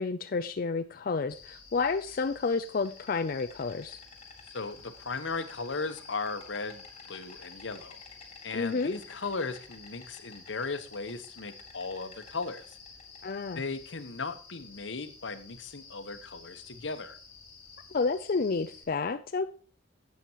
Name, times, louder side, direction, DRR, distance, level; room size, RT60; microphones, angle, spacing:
voice 1, 0.0-4.0 8.5-8.9 13.2-13.6 17.9-19.4, left 4 dB, 50° left, 8 dB, 0.5 m, -30 dB
Insect, 1.3-18.8, left 5 dB, 35° left, 2.8 m, -50 dB
voice 2, 4.5-8.0 8.4-12.8 13.5-17.2, left 4 dB, 80° left, 10 dB, 1.1 m, -37 dB
12.0 x 8.5 x 3.0 m, 0.40 s
head